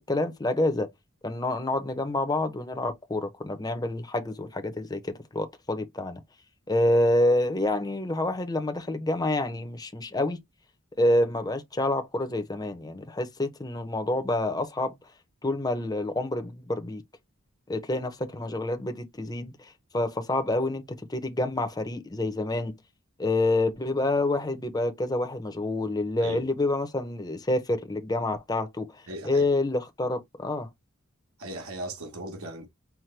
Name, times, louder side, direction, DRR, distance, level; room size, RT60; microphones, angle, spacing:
voice 1, 0.1-0.9 1.2-6.2 6.7-10.4 11.0-14.9 15.4-17.0 17.7-22.7 23.2-30.7, left 1 dB, 15° left, 0.6 m, -27 dB
voice 2, 29.1-29.5 31.4-32.7, right 1 dB, 80° right, 1.2 m, -37 dB
5.8 x 2.1 x 3.2 m
head